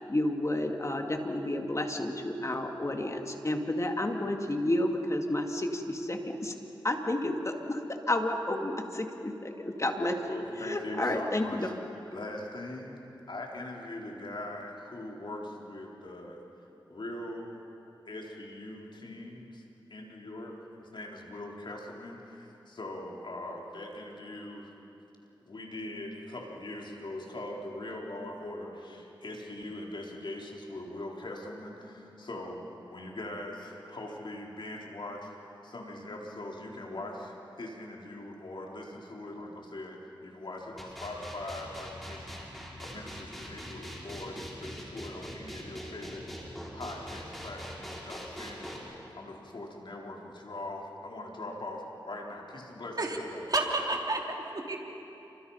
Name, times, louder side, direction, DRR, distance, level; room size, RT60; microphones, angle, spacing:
voice 1, 0.0-6.5 6.8-11.7, left 1 dB, 35° left, 4 dB, 2.5 m, -31 dB
voice 2, 10.2-11.7 12.1-13.0 13.3-16.4 16.9-17.5 18.1-19.6 19.9-20.5 20.8-24.7 25.4-53.4 53.7-53.8, left 1 dB, 65° left, -1 dB, 4.0 m, -41 dB
sound 1, 40.8-48.8, equal, ahead, 5.8 m, -42 dB
voice 3, 53.5-54.8, right 2 dB, 50° right, 1 dB, 3.3 m, -30 dB
28.5 x 25.0 x 5.7 m, 2.9 s
cardioid pair, 50°, 9 cm